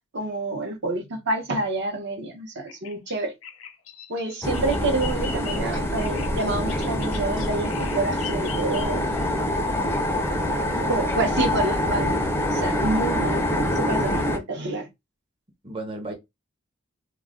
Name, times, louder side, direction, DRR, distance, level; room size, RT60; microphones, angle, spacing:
voice 1, 0.1-3.3 4.1-9.0 10.9-14.9, right 2 dB, 55° right, 0.8 m, -28 dB
Bird vocalization bird call bird song, 2.7-9.2, left 8 dB, 75° left, 0.5 m, -41 dB
sound 1, 4.4-14.4, left 1 dB, 10° left, 0.4 m, -25 dB
voice 2, 10.2-11.1 15.6-16.1, right 2 dB, 25° right, 0.6 m, -36 dB
2.3 x 2.1 x 3.5 m
head